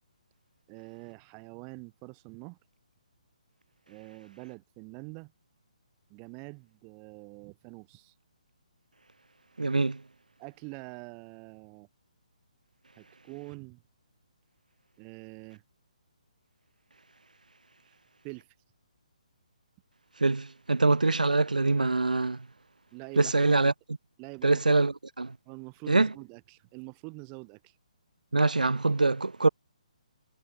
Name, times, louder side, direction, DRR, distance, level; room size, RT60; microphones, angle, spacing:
voice 1, 0.7-2.6 3.9-5.3 6.1-8.1 10.4-11.9 13.0-13.8 15.0-15.6 17.9-18.0 18.2-18.5 22.9-23.6 24.2-24.9 25.5-27.8, right 37 dB, 25° right, 7.3 m, -45 dB
voice 2, 9.6-10.0 20.2-22.4 23.2-23.7 24.4-25.3 25.9-26.1 28.3-29.5, right 3 dB, 90° right, 1.6 m, -24 dB
figure-of-eight pair, 145°, 4 cm